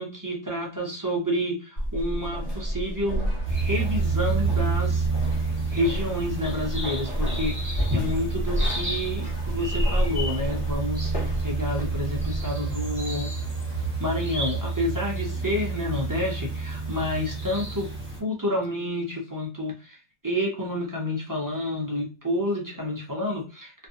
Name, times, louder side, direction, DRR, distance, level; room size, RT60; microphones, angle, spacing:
voice 1, 0.0-5.1 5.4-13.3 14.0-17.9 18.2-20.0 20.2-23.9, left 1 dB, 30° right, -2 dB, 0.4 m, -29 dB
sound 1, 1.8-12.4, equal, 50° left, 1.1 m, -31 dB
sound 2, 2.1-14.7, right 9 dB, 55° right, 0.7 m, -40 dB
sound 3, 3.4-18.2, right 3 dB, 10° right, 0.9 m, -29 dB
2.5 x 2.4 x 2.5 m, 0.32 s
omnidirectional pair, 1.2 m